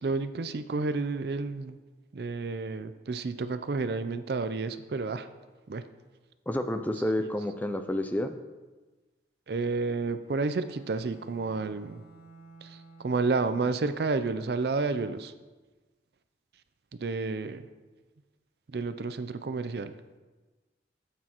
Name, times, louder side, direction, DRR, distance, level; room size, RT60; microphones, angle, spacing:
voice 1, 0.0-1.8 2.1-5.3 5.7-5.8 9.5-12.0 12.6-15.3 17.0-17.6 18.7-19.9, right 3 dB, 60° right, 11 dB, 0.4 m, -30 dB
voice 2, 6.5-8.4, left 1 dB, 10° left, 7 dB, 0.4 m, -29 dB
Bowed string instrument, 10.2-14.0, right 3 dB, 65° left, 0.9 m, -54 dB
13.0 x 8.5 x 3.0 m, 1.3 s
head